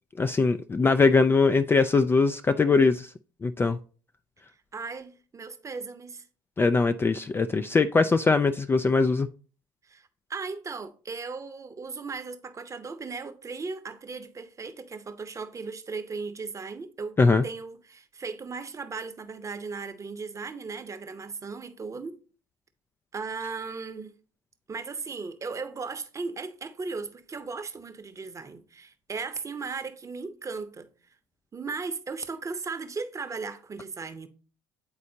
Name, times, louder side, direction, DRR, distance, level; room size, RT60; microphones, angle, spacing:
voice 1, 0.2-3.1 3.4-3.8 6.6-9.3 17.2-17.4, left 4 dB, 20° left, 0.3 m, -21 dB
voice 2, 4.7-6.3 9.8-17.2 17.4-22.2 23.1-24.1 24.7-30.9 31.5-34.3, right 4 dB, 25° right, 0.8 m, -37 dB
9.7 x 4.1 x 2.7 m
hypercardioid pair, 65°, 12 cm